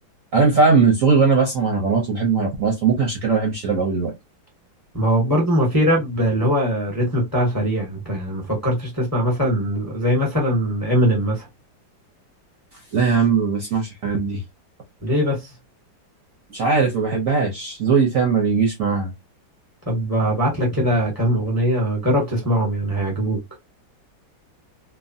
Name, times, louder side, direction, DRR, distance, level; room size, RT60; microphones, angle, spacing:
voice 1, 0.3-4.1 12.9-14.4 16.5-19.1, right 4 dB, 60° right, 0.9 m, -19 dB
voice 2, 4.9-11.5 15.0-15.5 19.9-23.4, equal, 15° left, 0.9 m, -21 dB
3.2 x 2.1 x 2.6 m
omnidirectional pair, 2.0 m